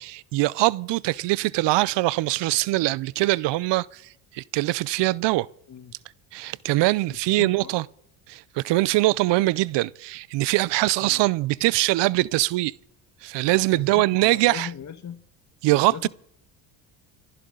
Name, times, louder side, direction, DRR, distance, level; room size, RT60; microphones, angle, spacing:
voice 1, 0.0-4.0 4.3-5.5 6.3-7.8 8.3-12.7 13.2-14.7 15.6-16.1, right 19 dB, 65° right, 0.6 m, -22 dB
voice 2, 7.1-7.8 11.0-11.3 13.7-15.2 15.7-16.1, left 8 dB, 40° left, 1.3 m, -39 dB
25.5 x 11.0 x 3.8 m
supercardioid pair, 90°, 46 cm